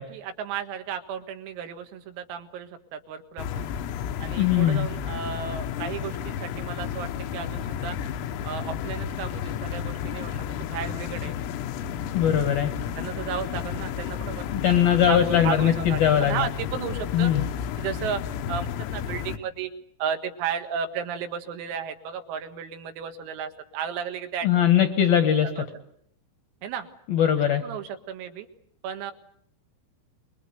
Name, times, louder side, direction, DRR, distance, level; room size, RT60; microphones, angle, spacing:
voice 1, 0.0-3.7 4.2-8.0 8.4-11.4 12.9-14.5 15.1-17.3 17.8-18.2 18.5-19.7 20.0-24.5 25.4-25.6 26.6-26.9 27.5-28.5 28.8-29.1, right 7 dB, 85° right, 7 dB, 4.4 m, -34 dB
sound 1, 3.4-19.4, left 8 dB, 85° left, 3.9 m, -32 dB
voice 2, 4.3-4.9 12.1-12.7 14.6-16.5 17.1-17.4 24.4-25.5 27.1-27.6, left 9 dB, 70° left, 8 dB, 2.3 m, -20 dB
26.5 x 22.5 x 8.0 m, 0.69 s
omnidirectional pair, 5.9 m